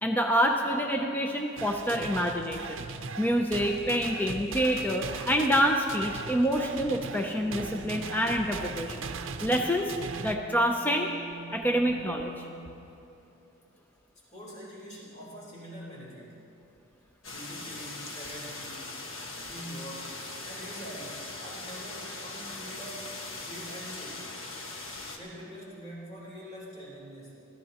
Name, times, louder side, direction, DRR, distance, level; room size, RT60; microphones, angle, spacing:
voice 1, 0.0-2.8 3.2-9.0 9.4-9.9 10.2-11.1 11.5-12.3, equal, 10° left, 2 dB, 0.5 m, -27 dB
sound 1, 1.6-10.4, right 5 dB, 60° right, 0.6 m, -39 dB
sound 2, 6.4-12.9, right 3 dB, 85° left, 2.5 m, -47 dB
voice 2, 14.3-16.4 17.3-19.0 19.5-20.2 20.4-23.2 23.4-24.3 25.2-27.3, equal, 35° left, -6 dB, 3.8 m, -44 dB
sound 3, 17.2-25.2, left 3 dB, 70° left, 1.5 m, -40 dB
23.5 x 14.0 x 3.0 m, 2.9 s
head